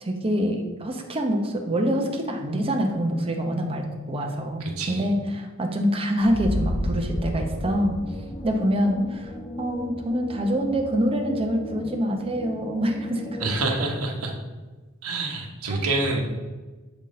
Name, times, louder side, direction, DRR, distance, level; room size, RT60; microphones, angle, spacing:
voice 1, 0.0-8.0 8.4-9.3 9.6-13.4 15.7-15.8, equal, 25° right, 2 dB, 0.7 m, -25 dB
voice 2, 4.6-5.1 13.4-14.3 15.0-16.2, right 2 dB, 90° right, 1 dB, 0.9 m, -27 dB
sound 1, 6.2-10.2, equal, 45° left, 1.5 m, -31 dB
sound 2, 6.4-13.7, left 1 dB, 20° left, 0.3 m, -38 dB
6.9 x 3.6 x 3.7 m, 1.3 s
head